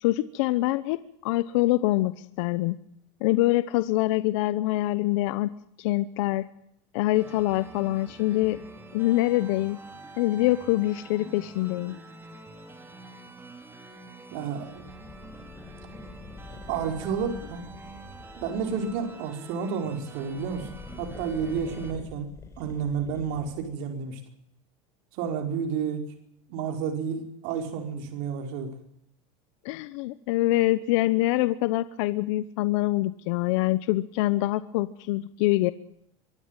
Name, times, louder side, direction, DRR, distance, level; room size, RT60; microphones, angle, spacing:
voice 1, 0.0-2.8 3.2-6.5 6.9-8.6 8.9-9.8 10.2-12.0 29.6-35.7, left 17 dB, 70° left, 14 dB, 1.0 m, -25 dB
sound 1, 7.1-21.9, right 2 dB, 15° right, 4.1 m, -46 dB
voice 2, 14.3-14.8 16.7-17.6 18.4-20.7 21.0-22.3 22.6-24.2 25.1-26.0 26.5-28.7, right 6 dB, 65° right, 4 dB, 5.1 m, -30 dB
sound 2, 14.7-19.2 20.1-23.8, left 3 dB, 20° left, 4.2 m, -46 dB
24.0 x 13.5 x 9.1 m, 0.74 s
supercardioid pair, 135°, 16 cm